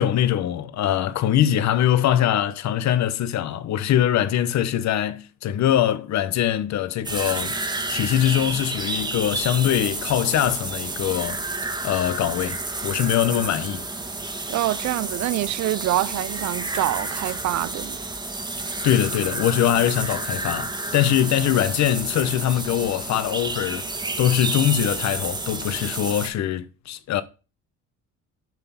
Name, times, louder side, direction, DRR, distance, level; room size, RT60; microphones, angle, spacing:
voice 1, 0.0-7.6 7.9-11.4 11.8-12.6 12.8-13.9 18.8-23.9 24.2-27.2, left 11 dB, 60° left, 1.0 m, -22 dB
sound 1, 7.0-26.3, right 2 dB, 15° right, 1.5 m, -30 dB
voice 2, 14.5-18.0, right 15 dB, 60° right, 0.5 m, -25 dB
7.7 x 5.8 x 7.2 m
cardioid pair, 130°, 32 cm